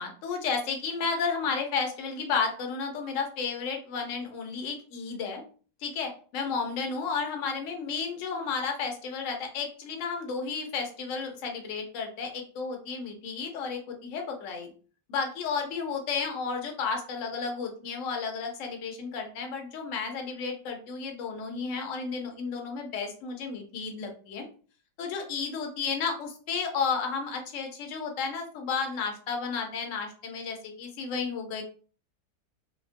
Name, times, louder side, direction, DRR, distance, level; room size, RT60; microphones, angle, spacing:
voice 1, 0.0-5.4 5.8-14.7 15.1-24.4 25.0-31.6, left 5 dB, 60° left, 3 dB, 0.9 m, -32 dB
2.8 x 2.3 x 2.5 m, 0.40 s
omnidirectional pair, 1.8 m